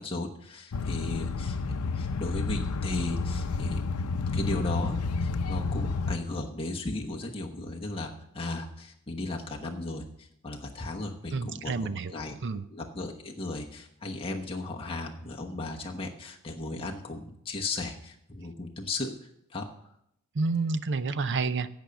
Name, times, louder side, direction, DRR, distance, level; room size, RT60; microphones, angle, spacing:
voice 1, 0.0-3.8 4.3-12.3 12.7-19.1 19.5-19.7, left 2 dB, 25° left, 0 dB, 1.1 m, -36 dB
sound 1, 0.7-6.2, left 4 dB, 80° left, 0.6 m, -30 dB
voice 2, 11.3-12.1 12.4-12.6 20.3-21.7, right 4 dB, 55° right, 14 dB, 0.6 m, -29 dB
15.0 x 5.2 x 7.0 m, 0.76 s
head